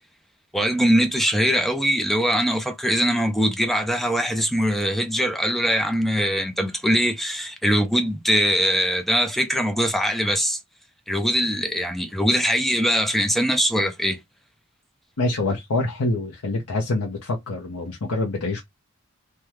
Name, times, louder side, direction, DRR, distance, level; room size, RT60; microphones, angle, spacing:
voice 1, 0.5-10.6 11.1-14.2, equal, ahead, 0.4 m, -22 dB
voice 2, 15.2-18.6, left 2 dB, 90° left, 0.8 m, -25 dB
3.4 x 2.2 x 2.9 m
head